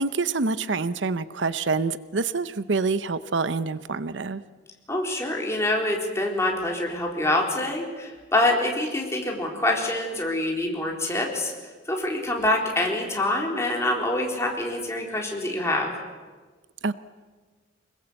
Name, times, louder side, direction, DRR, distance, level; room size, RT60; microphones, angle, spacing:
voice 1, 0.0-4.4 16.8-16.9, right 4 dB, 80° right, 14 dB, 0.8 m, -26 dB
voice 2, 4.9-11.5 11.9-15.9, left 1 dB, 15° left, 0 dB, 3.9 m, -25 dB
25.0 x 21.0 x 8.1 m, 1.4 s
head